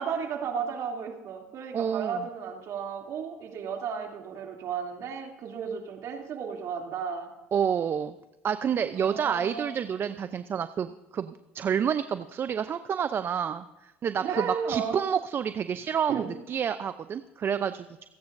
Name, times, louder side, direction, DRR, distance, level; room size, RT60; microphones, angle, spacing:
voice 1, 0.0-7.3 9.0-9.8 14.2-15.0 16.1-16.3, right 6 dB, 55° right, 1 dB, 2.8 m, -34 dB
voice 2, 1.7-2.2 7.5-8.1 8.4-16.1 16.5-18.1, right 8 dB, 40° right, 11 dB, 0.6 m, -29 dB
28.0 x 9.5 x 2.6 m, 1.0 s
hypercardioid pair, 80°, 6 cm